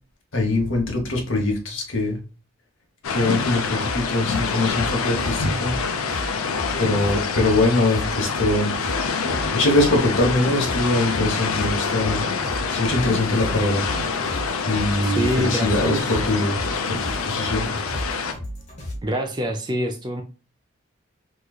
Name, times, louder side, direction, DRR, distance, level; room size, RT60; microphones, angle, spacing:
voice 1, 0.3-2.2 3.1-5.7 6.8-8.7 9.5-12.2 12.7-13.8 14.6-16.6 16.9-17.7, left 2 dB, 60° left, 1 dB, 1.1 m, -22 dB
sound 1, 3.0-18.3, left 5 dB, 80° left, 0.6 m, -26 dB
sound 2, 3.6-19.0, equal, 30° left, 1.0 m, -35 dB
voice 2, 15.0-16.0 19.0-20.2, equal, 20° right, 4 dB, 0.4 m, -25 dB
3.7 x 3.0 x 2.3 m, 0.33 s
head